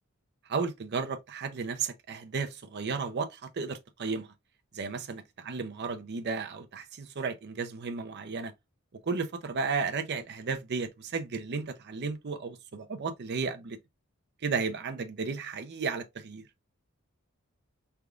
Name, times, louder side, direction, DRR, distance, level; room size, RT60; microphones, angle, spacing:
voice 1, 0.5-4.3 4.7-8.5 9.0-13.8 14.4-16.4, right 4 dB, 50° right, 0.5 m, -34 dB
4.8 x 3.4 x 2.3 m
head